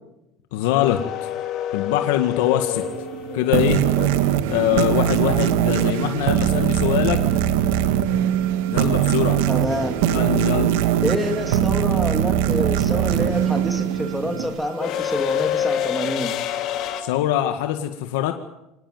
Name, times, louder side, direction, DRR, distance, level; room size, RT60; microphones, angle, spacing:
voice 1, 0.5-1.3 1.7-2.9 3.3-3.8 4.5-7.2 8.7-9.4 10.1-10.7 17.0-18.3, left 13 dB, 80° left, 6 dB, 1.9 m, -23 dB
sound 1, 0.8-4.8 7.3-7.4 8.7-9.0 9.2-17.0, left 9 dB, 40° left, 2.9 m, -28 dB
sound 2, 2.7-14.5, right 4 dB, 60° right, 2.9 m, -35 dB
sound 3, 3.5-14.7, right 11 dB, 80° right, 1.7 m, -21 dB
voice 2, 9.5-10.0 11.0-16.3, equal, ahead, 6 dB, 2.4 m, -27 dB
25.0 x 19.0 x 9.3 m, 0.92 s
cardioid pair, 170°, 0 cm